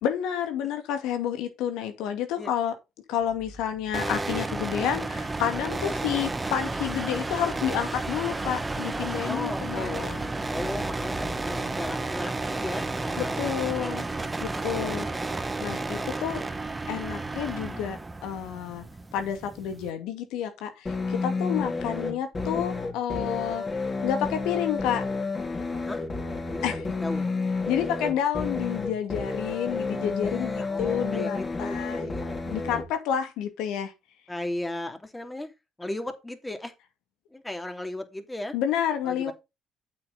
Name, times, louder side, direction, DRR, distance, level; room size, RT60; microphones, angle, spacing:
voice 1, 0.0-2.7 3.1-10.2 13.4-14.0 14.4-15.1 15.6-16.4 16.9-18.9 19.1-23.6 24.0-25.0 26.6-26.8 27.7-32.1 32.5-33.9 38.5-39.3, left 9 dB, 70° left, 2.3 m, -30 dB
sound 1, 3.2-11.8, left 1 dB, 65° right, 2.1 m, -47 dB
sound 2, 3.9-19.9, right 2 dB, 20° right, 1.4 m, -32 dB
voice 2, 9.3-13.5 13.7-14.3 14.8-15.1 21.1-21.3 25.8-26.0 26.5-27.3 30.2-32.4 34.3-35.5 35.8-36.7 37.3-38.5 39.0-39.3, left 1 dB, 15° left, 2.9 m, -36 dB
sound 3, 20.9-32.9, left 3 dB, 30° left, 4.3 m, -30 dB
8.6 x 8.1 x 4.1 m
hypercardioid pair, 55°, 0 cm